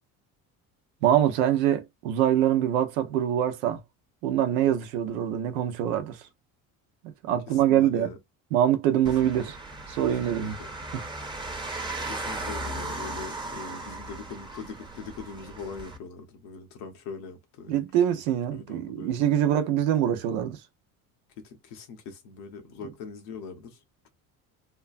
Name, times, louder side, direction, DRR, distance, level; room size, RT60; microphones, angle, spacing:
voice 1, 1.0-3.8 4.2-6.2 7.0-8.1 8.5-9.5 9.9-10.6 10.9-11.0 17.7-20.6, right 10 dB, 90° right, 0.7 m, -24 dB
voice 2, 7.5-8.2 9.2-9.3 10.1-10.7 12.1-17.8 18.1-18.2 18.5-19.3 21.4-23.8, left 5 dB, 80° left, 1.0 m, -42 dB
sound 1, 9.1-16.0, right 2 dB, 10° right, 0.8 m, -37 dB
3.0 x 2.2 x 2.4 m
supercardioid pair, 75°, 40 cm